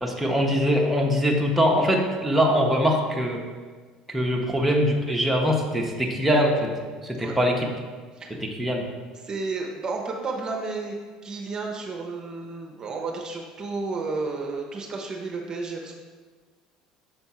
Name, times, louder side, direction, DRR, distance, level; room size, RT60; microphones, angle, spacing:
voice 1, 0.0-3.4 4.1-6.7 7.0-7.6 8.4-8.8, equal, 5° right, -1 dB, 0.9 m, -22 dB
voice 2, 9.1-11.0 11.2-16.0, right 3 dB, 35° right, 0 dB, 0.8 m, -32 dB
6.6 x 3.4 x 4.2 m, 1.5 s
supercardioid pair, 90°, 2 cm